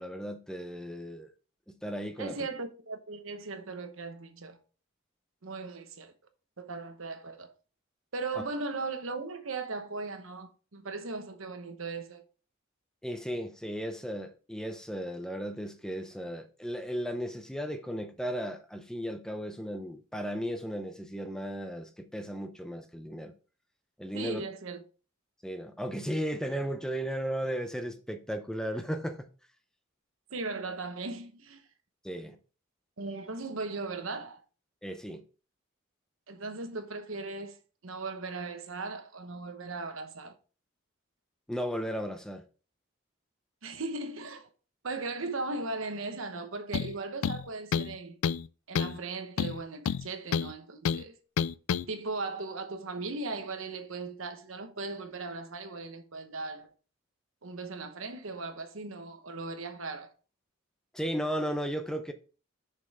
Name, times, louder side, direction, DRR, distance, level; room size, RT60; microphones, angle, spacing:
voice 1, 0.0-1.3 1.7-2.5 13.0-23.3 24.0-24.4 25.4-29.3 32.0-32.4 34.8-35.2 41.5-42.4 60.9-62.1, equal, 5° left, 0.6 m, -35 dB
voice 2, 2.2-4.6 5.4-6.1 6.6-7.5 8.1-12.2 24.1-24.8 30.3-31.6 33.0-34.4 36.3-37.6 37.8-40.3 43.6-44.5 44.8-48.2 48.7-51.2 51.9-56.7 57.4-60.1, right 3 dB, 70° right, 1.0 m, -38 dB
sound 1, 46.7-46.9 47.2-48.0 48.2-48.5 48.8-49.0 49.4-50.5 50.9-51.0 51.4-51.9, left 7 dB, 90° left, 0.4 m, -29 dB
6.7 x 5.5 x 3.5 m
head